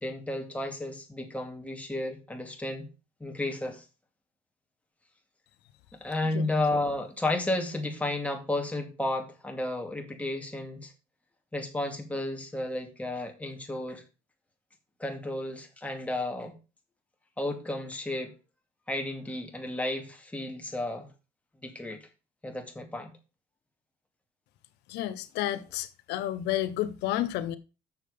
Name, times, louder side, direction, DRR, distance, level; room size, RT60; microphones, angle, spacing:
voice 1, 0.0-2.9 3.2-3.8 6.0-10.9 11.5-14.0 15.0-16.5 17.4-18.3 18.9-21.1 21.6-22.0 22.4-23.1, left 2 dB, 10° left, 2.4 m, -32 dB
voice 2, 24.9-27.6, left 13 dB, 85° left, 0.7 m, -31 dB
7.2 x 6.6 x 5.0 m
cardioid pair, 110°, 17 cm